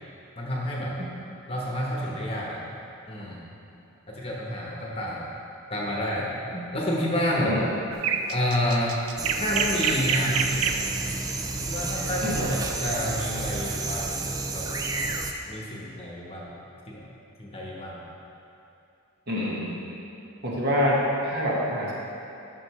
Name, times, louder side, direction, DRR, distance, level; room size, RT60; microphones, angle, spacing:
voice 1, 0.4-1.0 1.5-2.6 3.1-3.4 4.1-5.3 5.7-6.3 6.7-7.6 8.3-9.0 9.4-10.8 11.5-14.3 14.5-14.7 15.4-16.5 16.9-17.1 17.4-18.0, equal, 25° left, -4 dB, 1.1 m, -29 dB
voice 2, 7.3-7.6 12.2-12.5 19.3-19.8 20.4-21.9, equal, 50° right, -5 dB, 1.5 m, -26 dB
sound 1, 7.9-10.9 13.0-13.2, right 7 dB, 80° right, 0.5 m, -27 dB
sound 2, 9.2-15.3, right 3 dB, 15° right, 0.3 m, -30 dB
11.5 x 6.5 x 3.2 m, 2.8 s
head